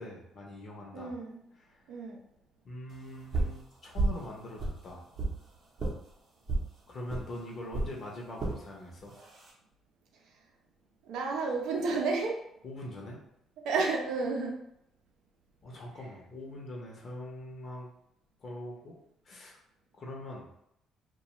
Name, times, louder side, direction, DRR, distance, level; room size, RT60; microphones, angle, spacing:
voice 1, 0.0-1.1 1.6-1.8 2.6-5.0 6.9-9.1 12.6-13.2 15.6-17.9 18.4-18.9 19.2-19.6 19.9-20.5, left 1 dB, 45° left, -2 dB, 0.7 m, -43 dB
voice 2, 0.9-1.4 1.9-2.2 11.0-12.4 13.6-14.6, right 4 dB, 85° right, 0 dB, 0.6 m, -31 dB
sound 1, 3.3-3.6 3.9-4.2 4.6-5.4 5.8-5.9 6.5-6.7 7.1-7.2 7.7-7.9 8.4-8.6 9.2-9.5, right 2 dB, 45° right, 0.7 m, -30 dB
2.4 x 2.3 x 2.9 m, 0.76 s
cardioid pair, 120°, 0 cm